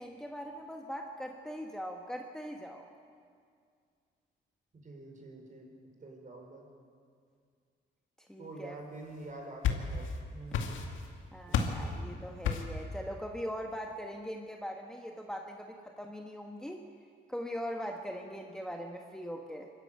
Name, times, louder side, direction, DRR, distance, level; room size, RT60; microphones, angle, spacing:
voice 1, 0.0-2.9 8.2-8.8 11.3-16.8 17.3-19.7, equal, 5° left, 1 dB, 1.5 m, -41 dB
voice 2, 4.8-6.6 8.4-10.7 11.5-11.9, right 2 dB, 40° right, 2 dB, 4.9 m, -47 dB
sound 1, 9.2-10.2 10.5-11.1 11.5-11.9 12.4-12.8, left 6 dB, 80° left, 2.1 m, -31 dB
23.5 x 13.0 x 8.8 m, 2.2 s
cardioid pair, 90°, 20 cm